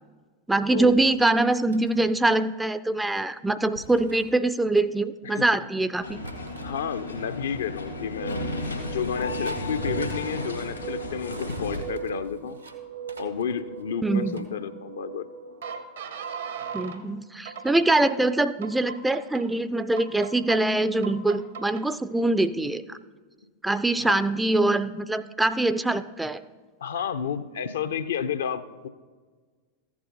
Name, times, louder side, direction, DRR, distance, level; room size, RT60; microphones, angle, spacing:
voice 1, 0.5-6.2 14.0-14.3 16.7-23.0 23.6-26.4, right 2 dB, 5° right, 13 dB, 0.3 m, -24 dB
sound 1, 0.9-1.2 1.7-2.1 3.7-4.3 6.2-6.8 7.6-7.7 8.3-8.8 9.2-9.7 10.0-10.4 11.1-12.8 13.1-14.5, right 2 dB, 85° right, 1.1 m, -46 dB
sound 2, 6.0-11.9, left 2 dB, 85° left, 1.8 m, -33 dB
voice 2, 6.6-8.5 8.8-12.6 13.2-15.2 24.0-24.2 26.8-28.9, left 8 dB, 65° left, 11 dB, 0.5 m, -31 dB
sound 3, 8.0-17.0 17.5-18.1 18.6-19.4 20.0-20.6 21.0-21.8, right 6 dB, 65° right, 0.8 m, -38 dB
14.5 x 8.5 x 2.9 m, 1.5 s
figure-of-eight pair, 90°, 0 cm